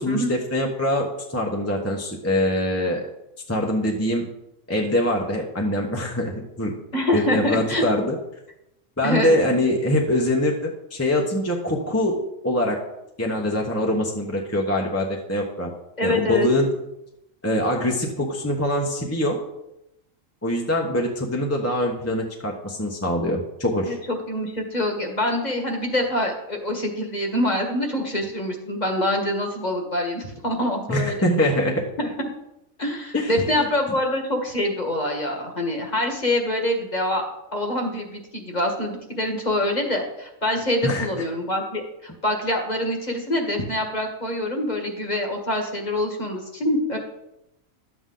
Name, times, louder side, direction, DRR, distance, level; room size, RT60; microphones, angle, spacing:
voice 1, 0.0-3.0 3.5-4.3 4.7-6.7 7.1-8.2 9.0-12.2 12.4-12.8 13.2-15.7 16.0-16.7 17.4-19.4 20.4-24.0 30.9-31.9 33.1-33.7 40.8-41.2, left 1 dB, 10° left, 0 dB, 1.0 m, -23 dB
voice 2, 6.9-7.8 9.0-9.3 16.0-16.5 23.8-31.1 32.0-32.3 32.8-37.2 37.5-47.0, left 1 dB, 30° left, 2 dB, 1.6 m, -25 dB
12.0 x 8.0 x 3.8 m, 0.86 s
omnidirectional pair, 1.4 m